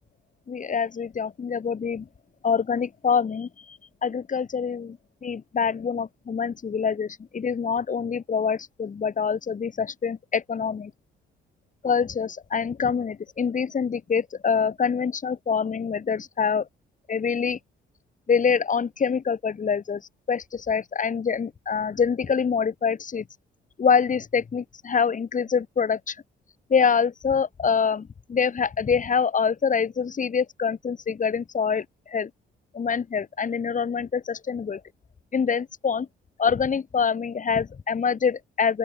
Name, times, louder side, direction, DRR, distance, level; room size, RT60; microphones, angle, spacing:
voice 1, 0.5-2.1 2.4-5.0 5.2-10.9 11.8-16.7 17.1-17.6 18.3-20.0 20.3-23.2 23.8-26.1 26.7-32.3 32.7-34.8 35.3-36.1 36.4-38.8, left 6 dB, 40° left, 3.1 m, -25 dB
open air
cardioid pair, 90°, 20 cm